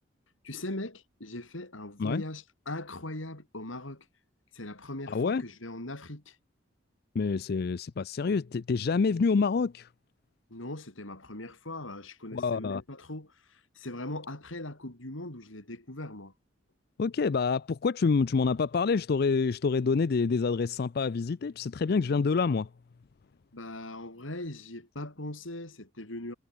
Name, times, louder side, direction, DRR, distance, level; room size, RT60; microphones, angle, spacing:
voice 1, 0.4-4.0 4.5-6.4 10.5-16.3 23.5-26.3, left 1 dB, 90° left, 4.7 m, -40 dB
voice 2, 5.1-5.4 7.1-9.9 12.3-12.8 17.0-22.7, left 4 dB, 50° left, 0.4 m, -27 dB
head